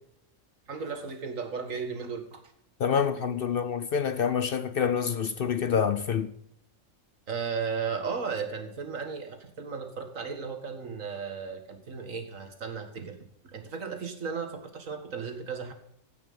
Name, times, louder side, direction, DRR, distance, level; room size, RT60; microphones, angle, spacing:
voice 1, 0.7-2.4 7.3-13.2 13.4-15.7, right 5 dB, 80° right, 2.1 m, -35 dB
voice 2, 2.8-6.3, left 7 dB, 55° left, 0.7 m, -27 dB
16.0 x 6.2 x 5.3 m
omnidirectional pair, 1.4 m